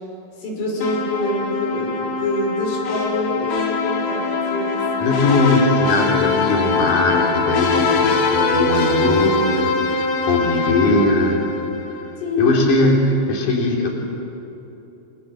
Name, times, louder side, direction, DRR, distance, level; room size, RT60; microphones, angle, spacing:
voice 1, 0.4-5.5 5.7-5.9 12.2-12.9, left 2 dB, 80° left, -1 dB, 8.2 m, -26 dB
sound 1, 0.8-12.0, left 4 dB, 60° left, 4.5 m, -22 dB
voice 2, 5.0-11.4 11.8-12.0 12.4-13.9, left 2 dB, 45° left, -1 dB, 5.2 m, -19 dB
29.5 x 27.0 x 7.4 m, 3.0 s
omnidirectional pair, 5.5 m